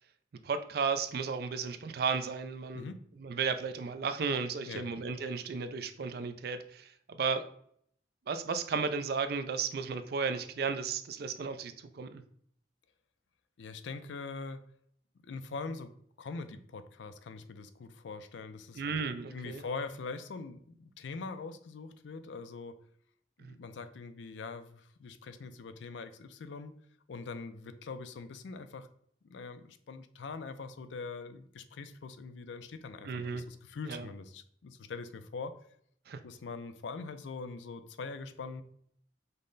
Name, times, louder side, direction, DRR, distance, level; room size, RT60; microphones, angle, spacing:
voice 1, 0.4-2.9 3.2-7.4 8.3-12.2 18.8-19.6 23.4-23.6 33.0-33.4 33.9-34.1 36.1-36.2, right 5 dB, 55° right, 10 dB, 0.4 m, -34 dB
voice 2, 13.6-14.6 15.2-18.8 19.3-22.8 23.4-26.7 27.1-28.9 29.2-35.5 36.2-38.6, left 4 dB, 80° left, 10 dB, 0.4 m, -43 dB
5.3 x 2.1 x 3.8 m, 0.66 s
head